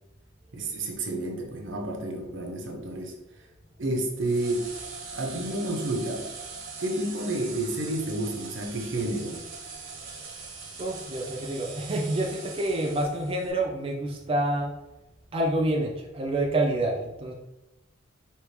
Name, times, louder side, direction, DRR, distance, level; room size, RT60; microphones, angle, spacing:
voice 1, 0.5-3.1 3.8-4.7 5.1-6.3 6.8-9.4, right 1 dB, 75° right, 2 dB, 0.9 m, -30 dB
sound 1, 4.2-13.5, right 4 dB, 55° right, 1.5 m, -41 dB
voice 2, 10.0-10.5 10.8-14.7 15.3-17.3, right 1 dB, 30° right, 0 dB, 0.4 m, -28 dB
4.6 x 3.1 x 3.3 m, 0.95 s
head